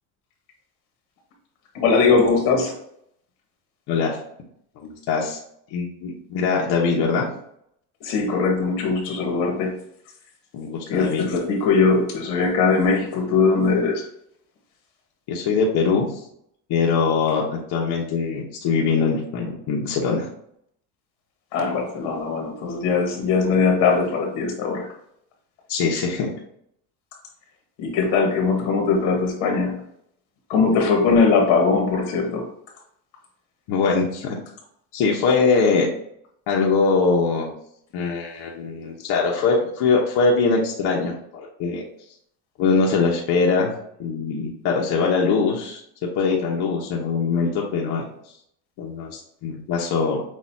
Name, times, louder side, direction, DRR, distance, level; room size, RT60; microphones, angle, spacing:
voice 1, 1.7-2.7 8.0-9.8 10.9-14.0 21.5-24.9 27.8-29.8 30.5-32.5, left 4 dB, 90° left, 2 dB, 1.5 m, -20 dB
voice 2, 3.9-4.2 4.8-5.4 5.7-7.2 10.5-11.3 15.3-16.1 16.7-20.3 25.7-26.3 33.7-34.4 34.9-35.9 36.5-37.5 37.9-41.9 42.6-43.7 44.0-45.8 46.2-48.0 48.8-50.2, left 4 dB, 65° left, -2 dB, 1.1 m, -22 dB
6.4 x 2.7 x 2.7 m, 0.71 s
cardioid pair, 115°, 44 cm